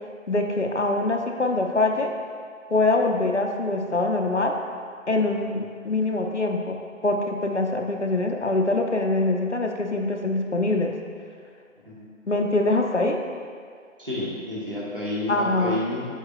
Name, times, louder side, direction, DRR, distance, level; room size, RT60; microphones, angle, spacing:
voice 1, 0.3-2.1 2.7-4.6 5.1-10.9 12.3-13.2 15.3-15.8, left 2 dB, 60° left, 2 dB, 0.6 m, -24 dB
voice 2, 14.0-16.1, left 1 dB, 40° right, -6 dB, 1.5 m, -30 dB
8.1 x 6.6 x 2.4 m, 2.1 s
figure-of-eight pair, 180°, 40 cm